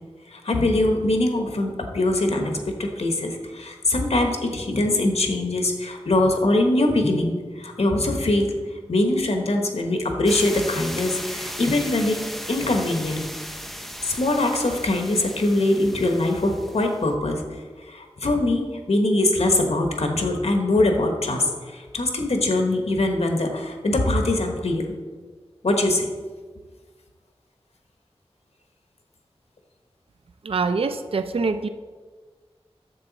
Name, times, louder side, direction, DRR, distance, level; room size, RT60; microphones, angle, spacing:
voice 1, 0.3-8.5 8.9-12.2 12.5-13.2 14.0-17.6 17.9-24.8 25.6-26.1, left 2 dB, 90° left, 3 dB, 1.2 m, -22 dB
sound 1, 10.3-17.0, equal, ahead, 0.7 m, -36 dB
voice 2, 30.4-31.7, right 4 dB, 65° right, 9 dB, 0.4 m, -24 dB
9.9 x 7.2 x 4.0 m, 1.5 s
wide cardioid pair, 60°, 11 cm